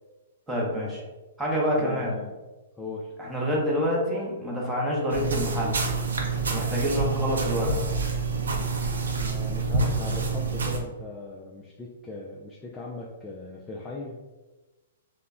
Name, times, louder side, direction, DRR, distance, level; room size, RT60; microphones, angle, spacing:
voice 1, 0.5-1.0 1.4-2.1 3.2-5.8 6.5-7.8, equal, 10° right, -4 dB, 0.7 m, -27 dB
voice 2, 1.7-2.4 2.8-3.1 9.1-14.2, left 2 dB, 15° left, -3 dB, 0.3 m, -39 dB
sound 1, 5.1-10.8, right 4 dB, 85° right, 0.5 m, -27 dB
2.1 x 2.1 x 3.5 m, 1.1 s
hypercardioid pair, 135°, 0 cm